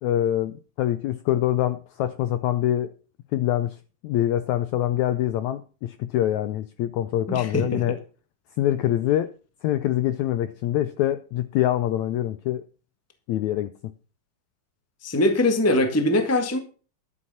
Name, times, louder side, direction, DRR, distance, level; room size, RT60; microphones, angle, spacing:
voice 1, 0.0-2.9 3.3-3.8 4.0-8.0 8.6-9.3 9.6-12.6 13.3-13.9, left 12 dB, 80° left, 13 dB, 1.6 m, -25 dB
voice 2, 7.3-8.0 15.0-16.6, left 1 dB, 20° left, 7 dB, 0.4 m, -22 dB
12.5 x 8.4 x 5.7 m, 0.37 s
omnidirectional pair, 4.0 m